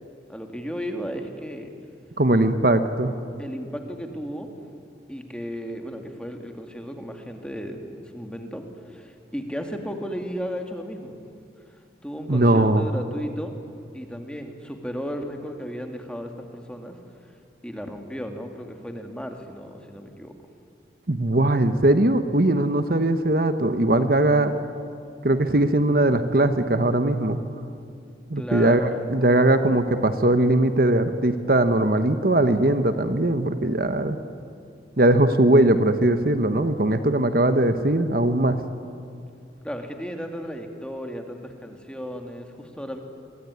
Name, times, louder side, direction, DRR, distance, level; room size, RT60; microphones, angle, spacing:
voice 1, 0.3-1.7 3.4-4.5 5.1-11.2 12.0-13.5 13.9-17.0 17.6-20.3 28.4-29.1 39.6-43.0, equal, 5° left, 4 dB, 2.3 m, -34 dB
voice 2, 2.2-3.1 12.3-12.8 21.1-24.5 25.2-27.4 28.3-34.2 35.0-38.6, right 1 dB, 55° right, 9 dB, 1.2 m, -20 dB
27.0 x 23.0 x 9.7 m, 2.4 s
head